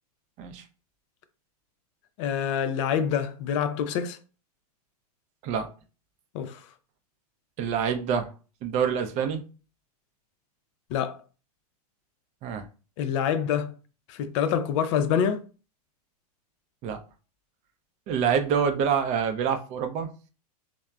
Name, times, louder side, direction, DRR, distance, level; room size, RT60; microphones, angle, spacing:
voice 1, 2.2-4.2 6.3-6.6 10.9-11.2 13.0-13.7 14.1-15.4, left 8 dB, 50° left, 0.4 m, -26 dB
voice 2, 7.6-8.3 8.6-9.4 12.4-12.6 16.8-17.0 18.1-20.1, right 7 dB, 35° right, 0.4 m, -26 dB
3.1 x 2.0 x 2.3 m
hypercardioid pair, 115°, 20 cm